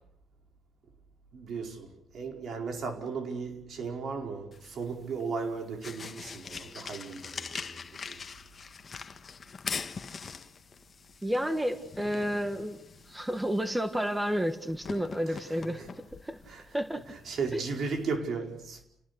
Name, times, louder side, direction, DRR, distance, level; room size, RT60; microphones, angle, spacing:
voice 1, 1.3-1.9 2.1-8.2 15.7-15.9 16.5-16.6 17.3-18.8, right 4 dB, 60° right, 4.8 m, -35 dB
sound 1, 4.5-18.1, left 5 dB, 40° left, 1.5 m, -43 dB
voice 2, 11.2-12.8 13.1-15.8 16.2-16.4 16.7-17.1 17.5-17.6, equal, 10° right, 1.7 m, -31 dB
30.0 x 19.0 x 6.9 m
cardioid pair, 90°, 0 cm